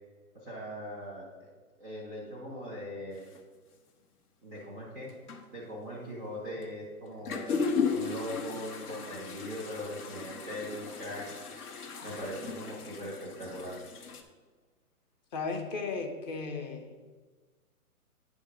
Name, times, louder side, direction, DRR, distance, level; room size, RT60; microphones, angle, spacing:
voice 1, 0.4-1.5 1.8-3.2 4.4-5.1 5.5-11.2 12.0-13.7, equal, 5° left, -5 dB, 0.4 m, -40 dB
sound 1, 3.2-3.4 4.5-4.6 5.1-5.4 6.6-6.7 7.1-14.2, left 5 dB, 80° left, 1.1 m, -36 dB
voice 2, 15.3-17.0, left 4 dB, 30° left, 4 dB, 0.8 m, -35 dB
9.5 x 3.6 x 5.0 m, 1.4 s
hypercardioid pair, 150°, 44 cm